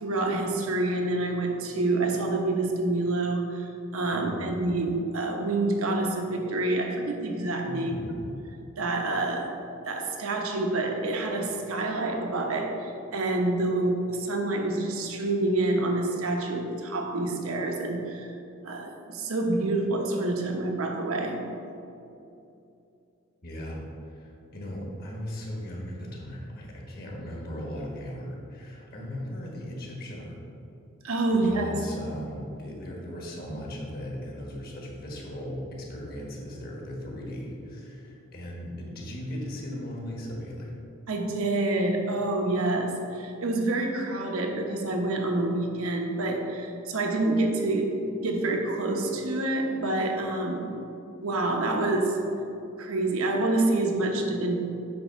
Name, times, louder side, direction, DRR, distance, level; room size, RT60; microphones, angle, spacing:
voice 1, 0.0-8.0 8.8-9.5 9.9-18.3 18.6-21.4 31.0-31.8 41.1-47.9 48.2-50.7 51.2-52.2 52.8-54.6, right 2 dB, 75° right, 2 dB, 0.9 m, -27 dB
voice 2, 4.1-4.6 7.6-8.4 23.4-30.4 31.4-40.7, equal, 40° left, -2 dB, 1.3 m, -38 dB
8.8 x 3.4 x 5.7 m, 2.8 s
head